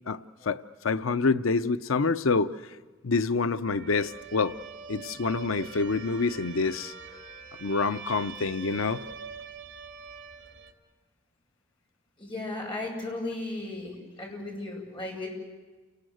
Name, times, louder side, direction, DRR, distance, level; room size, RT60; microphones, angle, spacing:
voice 1, 0.4-2.5 3.0-4.5 4.9-6.9 7.6-9.0, left 4 dB, 85° left, 13 dB, 0.7 m, -27 dB
sound 1, 3.6-10.7, right 6 dB, 70° right, 3.8 m, -44 dB
voice 2, 12.2-15.3, left 2 dB, 25° left, -1 dB, 7.5 m, -35 dB
29.0 x 20.0 x 7.9 m, 1.3 s
head